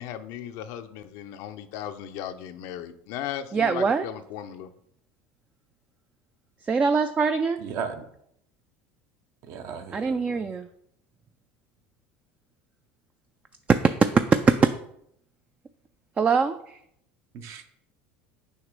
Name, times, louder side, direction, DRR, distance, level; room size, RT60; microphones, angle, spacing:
voice 1, 0.0-4.7, left 10 dB, 65° left, 10 dB, 0.5 m, -36 dB
voice 2, 3.5-4.1 6.6-7.6 9.9-10.7 13.7-13.8 14.3-14.7 16.2-16.8, right 5 dB, 20° right, 9 dB, 0.3 m, -22 dB
voice 3, 7.6-8.1 9.4-10.4 17.3-17.8, right 6 dB, 55° right, 7 dB, 0.9 m, -36 dB
6.3 x 2.9 x 5.2 m, 0.71 s
supercardioid pair, 95°, 6 cm